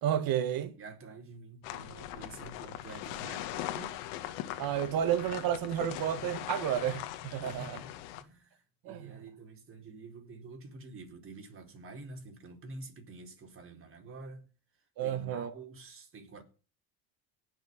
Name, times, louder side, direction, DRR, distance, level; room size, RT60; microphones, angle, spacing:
voice 1, 0.0-0.7 4.6-7.8 8.9-9.1 15.0-15.5, right 10 dB, 60° right, 1.8 m, -31 dB
voice 2, 0.8-4.0 7.4-14.5 15.0-16.4, right 3 dB, 30° right, 4.4 m, -48 dB
sound 1, 1.6-8.2, left 13 dB, 80° left, 1.8 m, -40 dB
18.5 x 6.7 x 8.1 m
supercardioid pair, 110°, 40 cm